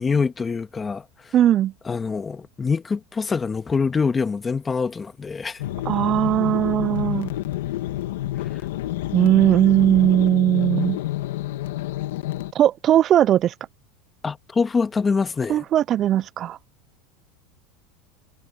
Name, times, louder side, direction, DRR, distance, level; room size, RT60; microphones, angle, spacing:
voice 1, 0.0-1.3 1.9-5.6 14.2-15.6, left 5 dB, 20° left, 1.7 m, -25 dB
voice 2, 1.3-1.7 5.9-7.3 9.1-11.0 12.5-13.5 15.5-16.6, right 12 dB, 40° right, 0.3 m, -19 dB
sound 1, 5.6-12.5, left 15 dB, 85° left, 1.4 m, -28 dB
supercardioid pair, 115°, 0 cm